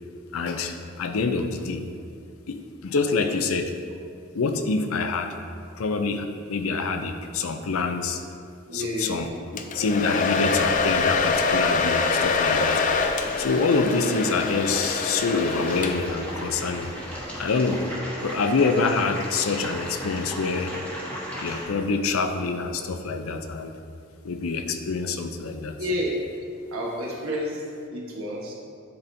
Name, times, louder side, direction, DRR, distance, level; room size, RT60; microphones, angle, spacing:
voice 1, 0.3-1.9 2.5-3.7 4.3-5.3 5.8-8.2 8.7-9.3 9.7-13.0 13.4-16.9 17.4-17.8 18.2-20.7 21.4-23.7 24.2-25.7, left 4 dB, 90° left, 6 dB, 0.5 m, -26 dB
voice 2, 8.7-9.2 25.8-26.2 26.7-27.6 27.9-28.5, equal, 90° right, -2 dB, 1.3 m, -29 dB
Domestic sounds home sounds, 9.6-16.3, left 4 dB, 40° left, 0.3 m, -25 dB
sound 1, 10.2-21.7, equal, 10° left, 1.2 m, -37 dB
10.5 x 4.2 x 2.7 m, 2.4 s
head